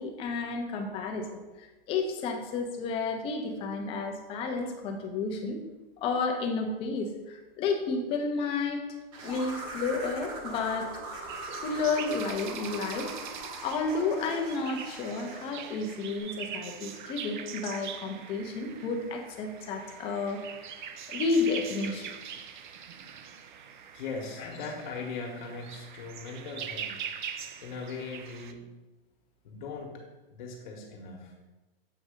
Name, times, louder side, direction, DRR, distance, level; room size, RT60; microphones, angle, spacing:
voice 1, 0.0-5.6 6.0-8.8 9.2-10.9 11.5-13.1 13.6-20.4 21.1-22.1 24.4-24.5, left 4 dB, 20° left, 3 dB, 0.6 m, -31 dB
sound 1, 9.1-15.8, right 2 dB, 35° right, 1.0 m, -41 dB
sound 2, 11.3-28.5, right 8 dB, 55° right, 0.6 m, -42 dB
voice 2, 23.9-27.0 27.6-28.6 29.4-30.0 30.3-31.3, left 4 dB, 55° left, -1 dB, 1.2 m, -39 dB
7.4 x 2.6 x 5.0 m, 1.2 s
hypercardioid pair, 150°, 29 cm